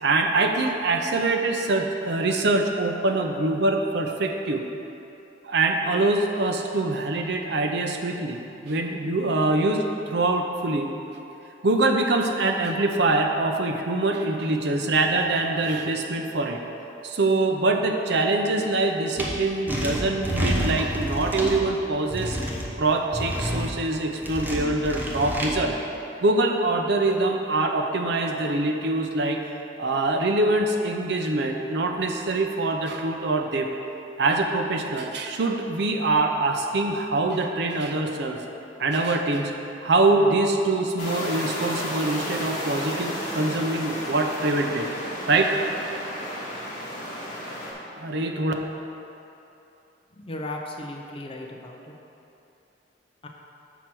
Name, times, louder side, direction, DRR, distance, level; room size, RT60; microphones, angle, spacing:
voice 1, 0.0-4.7 5.4-10.9 11.6-16.6 17.0-22.4 22.8-25.8 26.2-29.4 29.8-33.7 34.2-38.4 38.8-39.5 39.8-44.9 45.3-45.5 47.9-48.5, right 2 dB, 65° right, 3 dB, 0.6 m, -24 dB
sound 1, 19.2-19.3 19.7-21.6 22.1-22.6 23.1-23.7 24.2-25.5, equal, 10° right, 0.8 m, -28 dB
sound 2, 41.0-47.7, equal, 45° left, 1.7 m, -32 dB
voice 2, 50.2-51.8 53.2-53.3, left 1 dB, 30° left, 1 dB, 0.6 m, -36 dB
7.1 x 4.5 x 6.1 m, 2.9 s
head